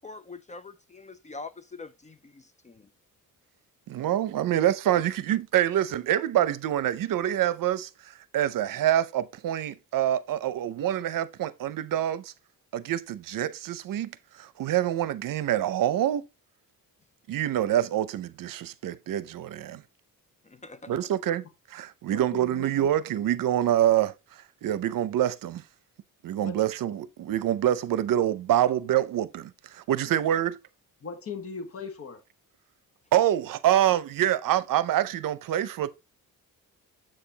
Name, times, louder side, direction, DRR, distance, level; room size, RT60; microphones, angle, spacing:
voice 1, 0.0-2.9 20.4-21.0 29.9-30.0, left 3 dB, 20° left, 0.4 m, -44 dB
voice 2, 3.9-12.3 12.7-16.2 17.3-19.8 20.9-21.4 21.7-24.1 24.6-25.6 26.2-30.6 33.1-35.9, right 11 dB, 70° right, 0.7 m, -26 dB
voice 3, 20.7-21.1 22.1-22.6 26.4-26.6 31.0-32.2, left 4 dB, 40° left, 1.4 m, -39 dB
7.6 x 6.7 x 2.9 m
cardioid pair, 145°, 34 cm